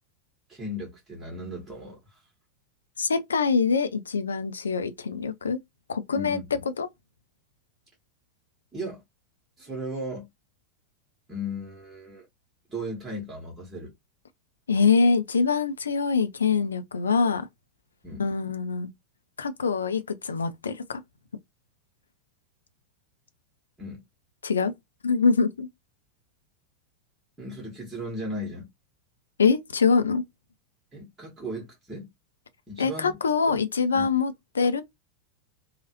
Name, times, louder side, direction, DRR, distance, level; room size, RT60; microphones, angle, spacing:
voice 1, 0.5-2.2 6.1-6.4 8.7-9.0 9.6-10.3 11.3-12.3 12.7-13.9 18.0-18.2 23.8-24.0 27.4-28.7 30.9-32.1 32.7-33.2 33.5-33.6 33.9-34.1, equal, 15° right, 1.4 m, -36 dB
voice 2, 3.0-5.6 5.9-6.4 6.8-6.9 14.7-17.5 18.2-18.9 19.4-21.0 24.4-24.7 25.0-25.7 29.4-30.2 32.8-34.8, left 5 dB, 70° left, 0.5 m, -24 dB
3.0 x 2.3 x 2.9 m
figure-of-eight pair, 90°, 0 cm